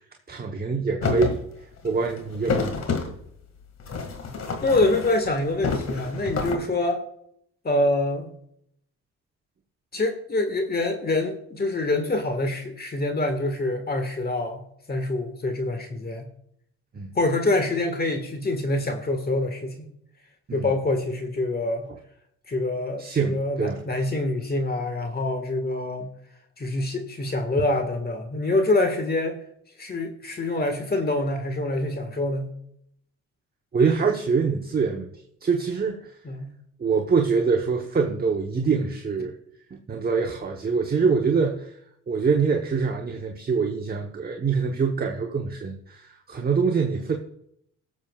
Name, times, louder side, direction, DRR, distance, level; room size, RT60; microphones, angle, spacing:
voice 1, 0.3-1.4 1.8-2.9 16.9-17.1 20.5-20.7 23.0-23.8 33.7-35.1 35.4-36.1 36.8-39.3 39.9-41.7 42.1-47.2, right 5 dB, 30° right, 2 dB, 1.0 m, -24 dB
sound 1, 1.0-1.4 1.8-3.1 3.8-5.3 5.6-6.6, left 4 dB, 60° left, 2.0 m, -28 dB
voice 2, 4.6-7.0 7.6-8.3 9.9-16.3 17.1-19.9 20.5-21.9 22.5-26.1 26.6-29.4 29.8-32.5 36.2-36.5, left 2 dB, 30° left, 5 dB, 1.6 m, -25 dB
20.5 x 7.2 x 2.4 m, 0.71 s
cardioid pair, 90°, 30 cm